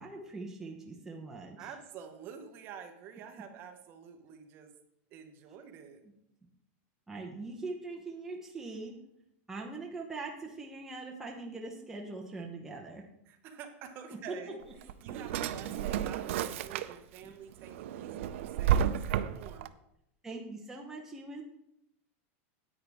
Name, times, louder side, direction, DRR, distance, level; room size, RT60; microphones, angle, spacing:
voice 1, 0.0-1.7 7.1-8.9 9.5-13.1 14.1-14.4 17.2-17.3 20.2-21.4, right 3 dB, 5° right, -1 dB, 0.8 m, -42 dB
voice 2, 1.6-4.7 5.1-6.0 13.3-19.7, right 7 dB, 30° right, 6 dB, 1.0 m, -48 dB
Drawer open or close, 14.6-17.2 17.6-19.7, right 10 dB, 65° right, 0.5 m, -32 dB
10.0 x 8.6 x 3.5 m, 0.79 s
supercardioid pair, 170°, 7 cm